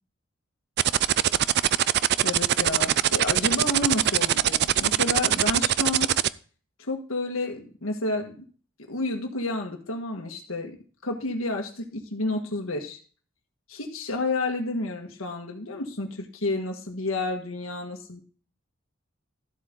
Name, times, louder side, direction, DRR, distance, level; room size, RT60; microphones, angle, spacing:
sound 1, 0.8-6.3, right 11 dB, 55° right, 0.4 m, -22 dB
voice 1, 2.2-6.1 6.8-8.4 8.9-10.7 11.0-13.0 13.7-18.2, left 2 dB, 80° left, 3 dB, 1.6 m, -30 dB
13.0 x 8.0 x 3.8 m, 0.41 s
head